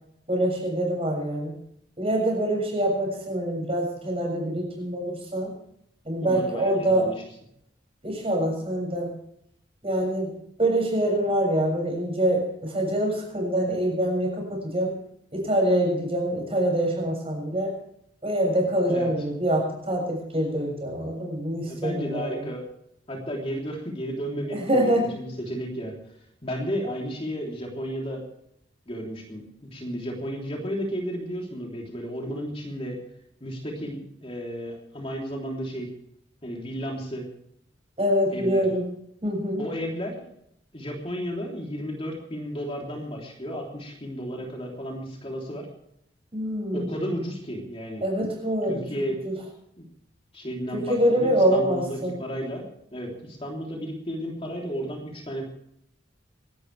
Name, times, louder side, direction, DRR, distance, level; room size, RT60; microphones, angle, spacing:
voice 1, 0.3-1.5 2.0-5.5 6.0-7.1 8.0-9.1 9.8-10.3 10.6-15.0 15.3-17.7 18.2-22.4 24.5-25.1 38.0-38.9 39.2-39.6 46.3-46.9 48.0-48.9 49.2-49.3 50.7-52.2, right 1 dB, 30° right, 2 dB, 6.8 m, -25 dB
voice 2, 6.2-7.2 18.9-19.1 21.1-21.3 21.6-22.6 23.1-25.9 26.4-28.2 28.8-33.0 33.4-35.9 36.4-37.3 38.3-38.6 39.6-40.2 40.7-45.7 46.7-48.0 48.7-49.2 49.8-49.9 50.3-55.4, equal, 30° left, 0 dB, 3.4 m, -33 dB
27.5 x 12.5 x 3.4 m, 0.73 s
head